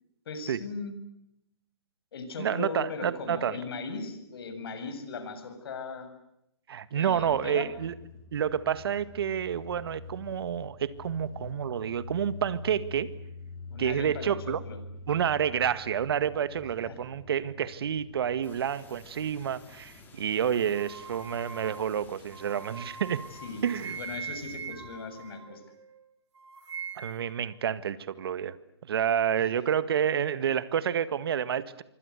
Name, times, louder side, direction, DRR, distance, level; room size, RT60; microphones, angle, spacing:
voice 1, 0.3-1.0 2.1-6.1 6.9-7.7 13.7-14.8 16.9-17.0 23.4-25.6 29.4-29.5, left 4 dB, 60° left, 9 dB, 7.2 m, -38 dB
voice 2, 2.4-3.6 6.7-7.9 8.3-13.1 13.8-14.6 15.1-23.2 23.6-24.0 26.9-28.6 28.8-31.8, right 8 dB, 60° right, 15 dB, 1.8 m, -29 dB
sound 1, 7.1-25.0, left 3 dB, 30° left, 4.3 m, -46 dB
sound 2, 18.4-24.2, left 4 dB, 15° left, 5.0 m, -55 dB
sound 3, 20.7-26.0 26.3-27.4, right 6 dB, 80° right, 3.9 m, -42 dB
26.5 x 25.0 x 8.3 m, 0.80 s
hypercardioid pair, 155°, 14 cm